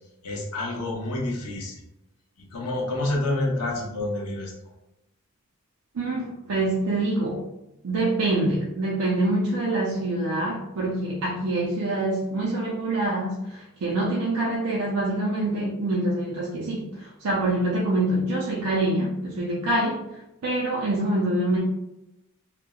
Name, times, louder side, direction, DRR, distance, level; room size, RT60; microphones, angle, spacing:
voice 1, 0.2-1.8 2.5-4.5, left 2 dB, 85° left, -1 dB, 0.7 m, -28 dB
voice 2, 5.9-7.4 7.8-20.0 20.4-21.6, right 2 dB, 90° right, -4 dB, 0.5 m, -25 dB
3.1 x 2.0 x 2.2 m, 0.90 s
head